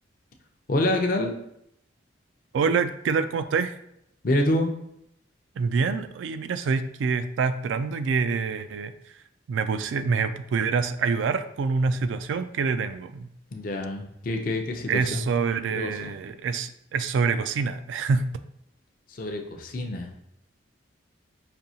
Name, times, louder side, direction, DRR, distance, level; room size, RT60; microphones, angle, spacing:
voice 1, 0.7-1.3 4.2-4.7 13.5-15.3 15.7-16.1 19.1-20.1, left 1 dB, 45° left, 3 dB, 0.5 m, -27 dB
voice 2, 2.5-3.7 5.6-9.1 9.5-13.3 14.9-18.3, right 5 dB, 80° right, 10 dB, 0.3 m, -26 dB
5.2 x 2.7 x 2.7 m, 0.76 s
head